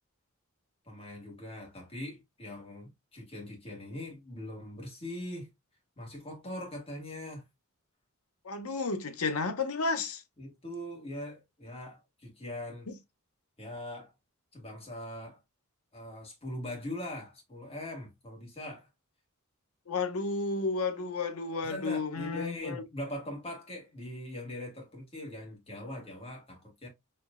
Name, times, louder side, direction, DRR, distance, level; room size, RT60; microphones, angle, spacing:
voice 1, 0.8-5.5 6.0-7.5 10.4-12.9 13.6-14.1 14.5-15.4 15.9-18.9 21.6-26.9, left 1 dB, 25° left, 1.9 m, -41 dB
voice 2, 8.4-10.2 12.9-13.0 19.9-22.8, left 4 dB, 85° left, 0.8 m, -32 dB
4.4 x 3.1 x 2.4 m
head